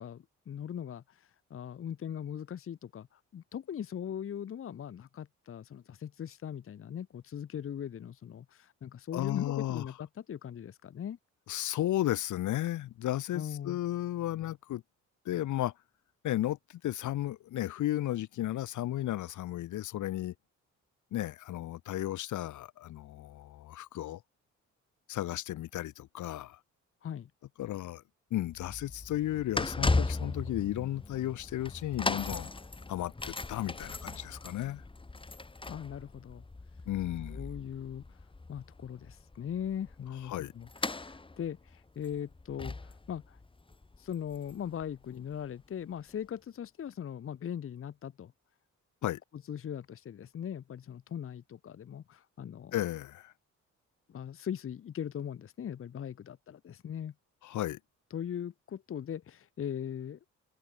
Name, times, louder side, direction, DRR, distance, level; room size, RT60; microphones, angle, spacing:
voice 1, 0.0-11.2 13.3-13.8 27.0-27.3 35.7-36.4 37.3-38.0 38.5-43.4 44.0-48.3 49.5-52.7 54.1-57.1 58.1-60.2, left 9 dB, 45° left, 1.1 m, -40 dB
voice 2, 9.1-9.9 11.5-14.8 15.2-15.7 16.2-20.3 21.1-24.2 25.1-26.6 27.6-28.0 28.3-32.5 32.9-34.8 36.9-37.4 40.2-40.5 49.0-49.2 52.7-53.3 57.4-57.8, left 14 dB, 75° left, 1.5 m, -34 dB
sound 1, 28.5-45.5 46.1-46.2, left 3 dB, 15° left, 1.9 m, -37 dB
cardioid pair, 90°, 30 cm